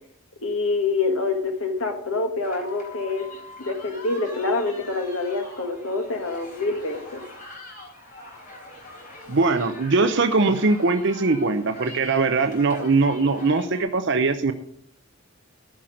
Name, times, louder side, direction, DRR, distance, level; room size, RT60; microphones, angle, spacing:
voice 1, 0.4-3.2 3.6-7.2, left 3 dB, 70° left, 4 dB, 1.5 m, -26 dB
sound 1, 2.4-13.8, left 1 dB, 40° left, 3.9 m, -43 dB
voice 2, 9.3-14.5, right 3 dB, 55° right, 8 dB, 0.7 m, -21 dB
14.0 x 5.9 x 6.4 m, 0.65 s
head